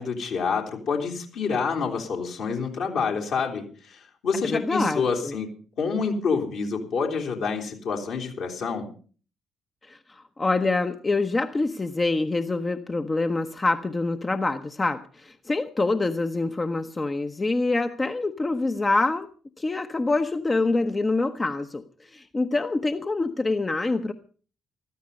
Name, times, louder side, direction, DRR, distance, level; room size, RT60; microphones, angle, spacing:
voice 1, 0.0-5.5 5.8-8.9, left 5 dB, 60° left, 2 dB, 3.2 m, -27 dB
voice 2, 4.4-5.4 9.8-19.3 19.6-24.1, left 3 dB, 25° left, 8 dB, 1.0 m, -26 dB
15.0 x 13.5 x 5.4 m, 0.41 s
figure-of-eight pair, 40°, 0 cm